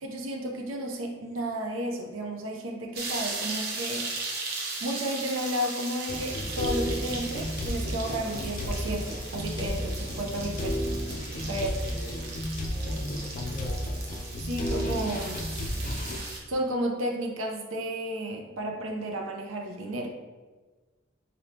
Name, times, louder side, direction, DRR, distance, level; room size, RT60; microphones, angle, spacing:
voice 1, 0.0-4.1 4.8-10.9 11.4-11.7 14.4-15.4 16.5-20.1, right 1 dB, 85° right, 2 dB, 0.6 m, -32 dB
sound 1, 3.0-16.4, right 3 dB, 50° right, 0.8 m, -38 dB
sound 2, 6.1-16.2, equal, 40° left, 0.4 m, -33 dB
sound 3, 6.2-12.0, equal, 35° right, 1.1 m, -46 dB
voice 2, 11.5-14.0 15.7-16.2, equal, ahead, -8 dB, 0.9 m, -43 dB
4.0 x 3.5 x 2.8 m, 1.3 s
head